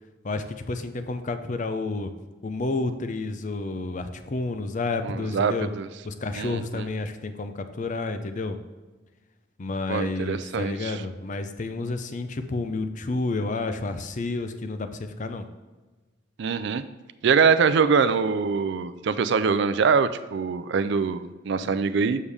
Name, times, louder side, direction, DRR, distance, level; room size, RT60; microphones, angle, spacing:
voice 1, 0.2-2.1 2.4-5.7 6.0-8.6 9.6-15.5 21.6-21.7, left 3 dB, 40° left, 9 dB, 0.5 m, -30 dB
voice 2, 5.0-5.9 6.3-6.9 9.9-11.0 16.4-16.8 17.2-22.2, right 5 dB, 60° right, 13 dB, 0.4 m, -23 dB
7.1 x 6.5 x 3.4 m, 1.3 s
head